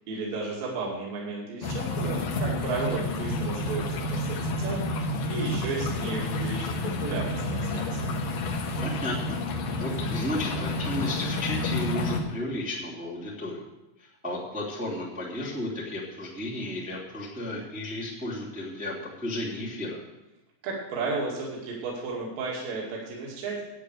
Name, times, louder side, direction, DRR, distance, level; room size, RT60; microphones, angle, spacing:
voice 1, 0.1-6.8 7.0-8.1 20.6-23.6, right 3 dB, 55° right, -3 dB, 3.9 m, -33 dB
sound 1, 1.6-12.2, left 2 dB, 65° left, 2.3 m, -30 dB
voice 2, 8.8-9.4 9.8-13.6 14.0-20.0, left 1 dB, 5° right, -5 dB, 1.6 m, -33 dB
11.0 x 9.6 x 6.5 m, 0.95 s
omnidirectional pair, 5.4 m